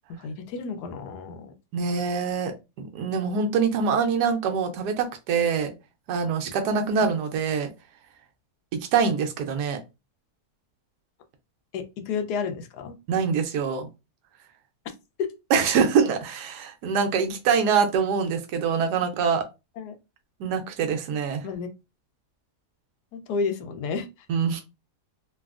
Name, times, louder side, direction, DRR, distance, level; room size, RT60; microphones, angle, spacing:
voice 1, 0.1-1.5 11.7-13.0 15.2-15.3 19.8-19.9 21.4-21.7 23.1-24.1, left 5 dB, 80° left, 1.1 m, -31 dB
voice 2, 1.7-2.5 2.8-5.7 6.1-7.7 8.7-9.8 13.1-13.9 15.5-19.5 20.4-21.4 24.3-24.6, right 6 dB, 80° right, 1.2 m, -24 dB
3.3 x 2.3 x 2.3 m
omnidirectional pair, 1.7 m